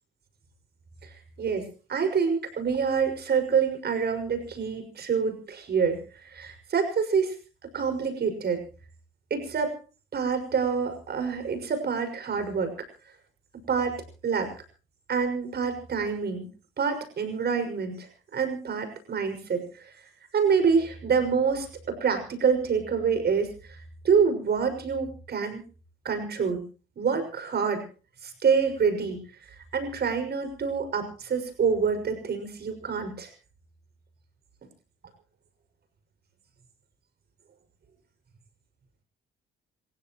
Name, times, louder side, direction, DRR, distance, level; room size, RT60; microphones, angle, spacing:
voice 1, 1.4-7.3 7.7-8.6 9.3-9.7 10.1-12.7 13.7-14.0 14.2-14.5 15.1-16.5 16.8-19.9 20.3-23.8 24.0-25.6 26.0-26.6 27.0-27.8 28.2-29.2 29.7-33.3, right 6 dB, 55° right, 7 dB, 6.2 m, -26 dB
28.0 x 16.0 x 3.1 m, 0.36 s
cardioid pair, 90°, 20 cm